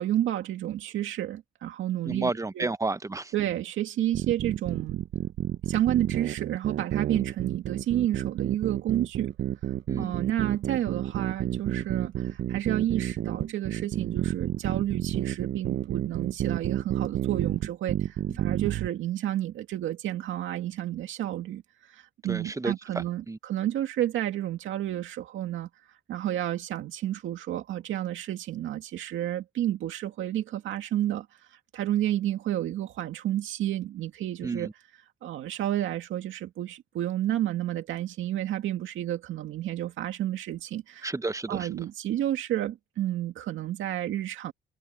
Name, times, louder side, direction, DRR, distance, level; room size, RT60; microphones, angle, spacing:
voice 1, 0.0-2.7 3.3-5.0 5.7-9.3 10.0-25.7 26.1-41.1 41.5-44.5, right 12 dB, 80° right, 2.2 m, -31 dB
voice 2, 2.1-3.3 7.1-7.3 9.9-10.1 22.3-23.4 34.4-34.7 41.0-41.6, right 3 dB, 15° right, 0.8 m, -32 dB
sound 1, 4.1-18.9, right 12 dB, 65° right, 0.7 m, -30 dB
cardioid pair, 90°, 20 cm